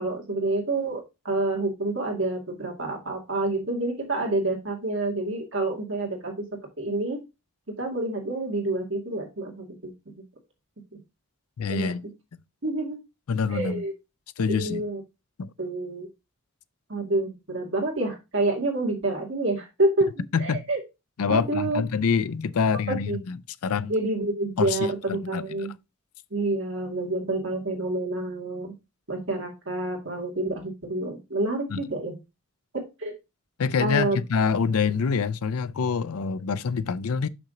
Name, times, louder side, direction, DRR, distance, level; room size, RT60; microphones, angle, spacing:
voice 1, 0.0-6.5 6.8-7.2 7.8-9.9 11.7-11.9 12.6-13.0 13.5-13.9 14.5-15.0 15.6-16.1 16.9-20.8 21.3-21.8 22.9-23.2 23.9-25.7 26.3-28.7 29.1-32.1 32.7-33.1 33.8-34.2, right 2 dB, 55° right, 2.2 m, -28 dB
voice 2, 11.6-12.1 13.3-13.8 14.4-14.8 15.4-15.5 20.3-20.6 21.2-23.4 23.6-23.9 24.6-24.8 25.1-25.6 31.7-31.8 33.6-37.3, left 5 dB, 80° left, 0.5 m, -26 dB
6.0 x 5.8 x 3.9 m
head